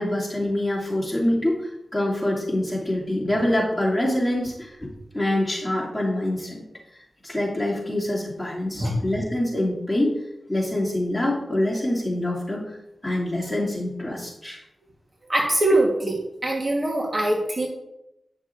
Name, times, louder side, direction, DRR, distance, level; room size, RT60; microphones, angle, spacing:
voice 1, 0.0-6.6 7.2-10.1 10.5-12.6 13.0-14.6, left 1 dB, 10° left, -5 dB, 2.6 m, -25 dB
voice 2, 15.3-16.2 16.4-17.7, right 1 dB, 35° right, -1 dB, 1.3 m, -22 dB
9.6 x 6.3 x 2.5 m, 0.87 s
cardioid pair, 70°, 0 cm